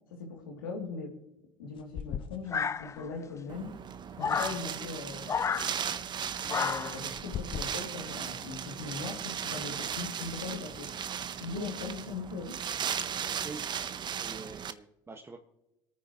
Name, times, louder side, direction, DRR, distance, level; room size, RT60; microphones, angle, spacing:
voice 1, 0.1-1.1 1.6-3.7 4.2-5.3 6.4-10.9 11.4-12.5, left 4 dB, 90° left, 0 dB, 2.7 m, -40 dB
sound 1, 1.7-12.0, left 8 dB, 50° left, 1.0 m, -47 dB
sound 2, 2.5-3.2 4.2-4.6 5.3-5.7 6.5-7.0, left 6 dB, 25° left, 0.4 m, -31 dB
Wind, 3.5-14.7, right 8 dB, 40° right, 0.8 m, -37 dB
voice 2, 13.3-13.6 14.2-15.4, right 4 dB, 25° right, 1 dB, 1.5 m, -45 dB
25.5 x 9.3 x 3.0 m, 0.88 s
hypercardioid pair, 70°, 11 cm